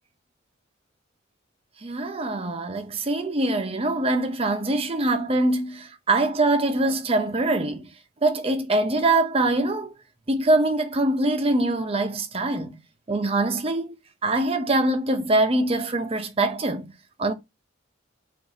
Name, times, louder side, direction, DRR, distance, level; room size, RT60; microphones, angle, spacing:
voice 1, 1.8-7.9 8.2-9.9 10.3-12.8 13.1-13.9 14.2-16.9 17.2-17.3, right 2 dB, 30° right, 0.6 m, -23 dB
4.1 x 2.5 x 4.7 m
head